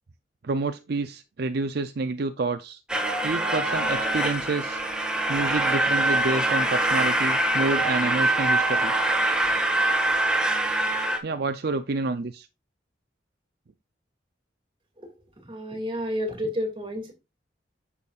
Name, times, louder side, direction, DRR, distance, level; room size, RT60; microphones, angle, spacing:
voice 1, 0.4-2.8 3.2-4.8 5.3-8.9 11.2-12.5, right 3 dB, 60° right, 0.5 m, -28 dB
sound 1, 2.9-11.2, right 1 dB, 5° right, 1.7 m, -24 dB
voice 2, 15.4-17.1, equal, 30° right, 2.4 m, -30 dB
10.5 x 7.2 x 2.5 m
head